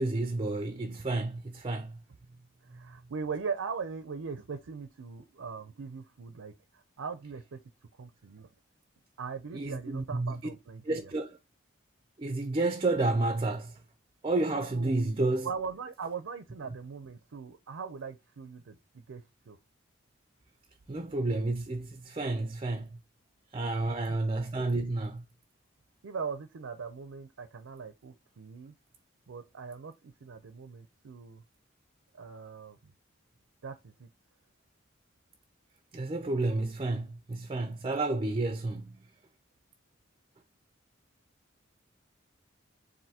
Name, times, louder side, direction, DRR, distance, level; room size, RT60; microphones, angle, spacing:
voice 1, 0.0-2.0 2.7-2.8 9.5-10.4 10.8-11.4 12.2-13.8 14.2-15.5 20.9-23.0 23.5-25.2 35.9-39.1, right 2 dB, 25° right, 0.4 m, -31 dB
voice 2, 2.6-7.6 8.0-8.5 9.2-11.1 14.7-15.0 15.4-19.6 23.8-24.2 26.0-28.7 29.3-31.4 32.1-32.9 33.6-34.1, right 5 dB, 85° right, 0.5 m, -40 dB
7.4 x 2.6 x 2.8 m
head